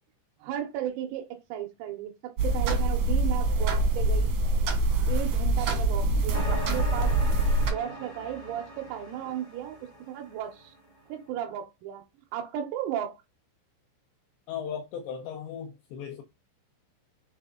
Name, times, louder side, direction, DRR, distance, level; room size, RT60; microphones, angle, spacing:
voice 1, 0.4-4.4 5.1-7.1 7.7-9.8 10.1-10.7 11.1-12.0 12.3-13.1, right 10 dB, 90° right, 3.7 m, -35 dB
sound 1, 2.4-7.7, right 2 dB, 75° right, 1.8 m, -25 dB
sound 2, 6.3-10.8, equal, 60° left, 0.7 m, -40 dB
voice 2, 14.5-16.2, left 7 dB, 80° left, 2.6 m, -36 dB
8.0 x 3.4 x 3.7 m
omnidirectional pair, 5.9 m